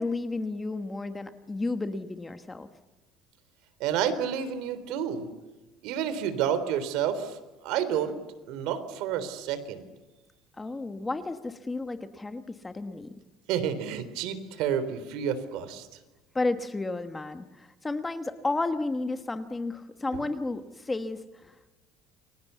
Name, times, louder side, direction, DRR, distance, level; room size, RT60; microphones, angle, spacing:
voice 1, 0.0-2.7 10.6-13.1 16.3-21.5, left 2 dB, 10° left, 9 dB, 1.2 m, -32 dB
voice 2, 3.8-5.3 5.8-7.4 7.6-8.2 8.5-9.9 13.5-15.9, right 8 dB, 65° right, 12 dB, 3.6 m, -29 dB
29.5 x 23.5 x 8.2 m, 1.1 s
cardioid pair, 170°, 0 cm